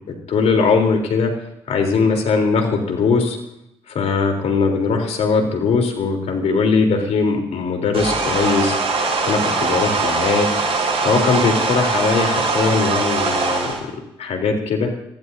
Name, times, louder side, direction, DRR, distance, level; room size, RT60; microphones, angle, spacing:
voice 1, 0.1-1.3 1.7-3.4 3.9-8.8 9.3-10.5 11.0-13.8 14.2-14.9, left 4 dB, 65° left, 3 dB, 3.6 m, -20 dB
sound 1, 7.9-13.8, right 3 dB, 55° right, 6.0 m, -21 dB
23.0 x 16.0 x 2.8 m, 0.82 s
hypercardioid pair, 50°, 12 cm